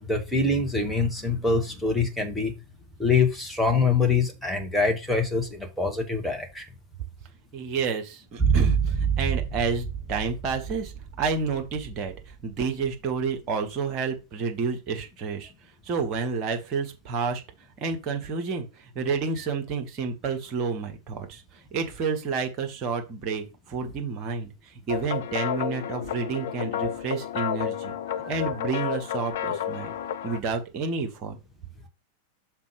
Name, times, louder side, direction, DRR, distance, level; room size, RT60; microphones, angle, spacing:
voice 1, 0.0-2.5 3.0-6.6, left 4 dB, 5° left, 1.5 m, -24 dB
voice 2, 7.5-10.9 11.2-15.5 15.8-17.4 17.8-21.4 21.7-24.5 24.9-27.9 28.3-29.9 30.2-31.4, right 5 dB, 35° right, 1.5 m, -30 dB
sound 1, 8.4-12.6 12.9-13.0, right 6 dB, 15° right, 1.6 m, -27 dB
sound 2, 24.9-30.4, left 9 dB, 55° left, 0.4 m, -31 dB
5.9 x 4.2 x 5.1 m
figure-of-eight pair, 90°, 0 cm